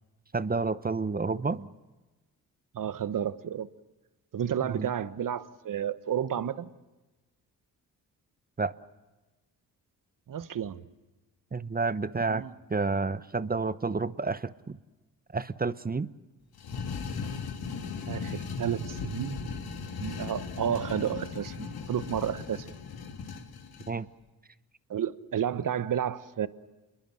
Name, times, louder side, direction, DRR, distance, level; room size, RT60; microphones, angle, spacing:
voice 1, 0.3-1.7 4.6-4.9 8.6-8.7 11.5-12.4 12.7-14.8 15.3-16.1 23.9-24.1, right 4 dB, 25° right, 15 dB, 0.9 m, -30 dB
voice 2, 2.7-3.7 4.3-6.7 10.3-10.8 12.3-12.5 18.1-19.5 19.9-22.7 24.9-26.5, right 9 dB, 55° right, 14 dB, 1.2 m, -31 dB
sound 1, 16.5-23.9, left 5 dB, 70° left, 3.0 m, -37 dB
27.5 x 22.0 x 7.7 m, 1.1 s
supercardioid pair, 55°, 39 cm